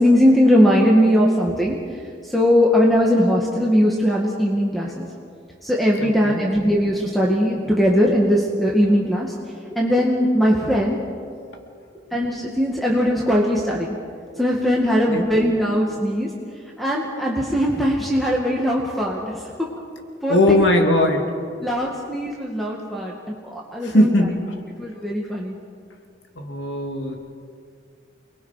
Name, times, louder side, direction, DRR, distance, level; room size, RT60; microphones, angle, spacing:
voice 1, 0.0-5.1 5.6-9.3 9.7-11.0 12.1-14.0 14.4-16.3 16.8-19.2 19.6-19.7 20.2-20.6 21.6-24.1 24.8-25.6, equal, ahead, -3 dB, 2.2 m, -20 dB
voice 2, 6.0-6.4 15.1-15.2 20.3-21.3 23.8-24.4 26.4-27.2, left 1 dB, 75° left, 3 dB, 2.6 m, -19 dB
30.0 x 21.5 x 5.9 m, 2.3 s
head